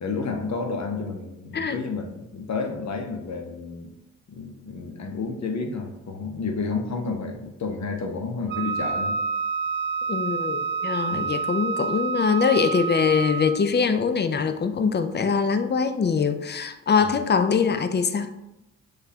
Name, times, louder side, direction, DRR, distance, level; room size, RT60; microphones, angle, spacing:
voice 1, 0.0-3.9 4.3-9.2 11.1-11.3 17.0-17.1, left 4 dB, 50° left, 0.8 m, -31 dB
Wind instrument woodwind instrument, 8.5-13.7, right 5 dB, 35° right, 0.4 m, -28 dB
voice 2, 10.1-18.3, left 6 dB, 30° left, 0.4 m, -23 dB
6.4 x 2.4 x 2.8 m
hypercardioid pair, 45°, 35 cm